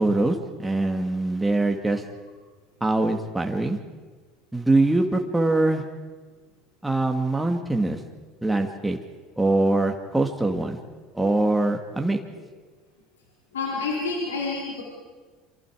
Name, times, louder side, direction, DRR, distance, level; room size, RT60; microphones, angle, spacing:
voice 1, 0.0-2.0 2.8-3.8 4.5-5.8 6.8-8.0 8.4-9.0 9.4-10.8 11.1-12.2, right 2 dB, 10° right, 3 dB, 2.4 m, -23 dB
voice 2, 13.5-14.8, left 4 dB, 85° left, -3 dB, 4.6 m, -28 dB
28.5 x 25.5 x 5.1 m, 1.4 s
hypercardioid pair, 75°, 0 cm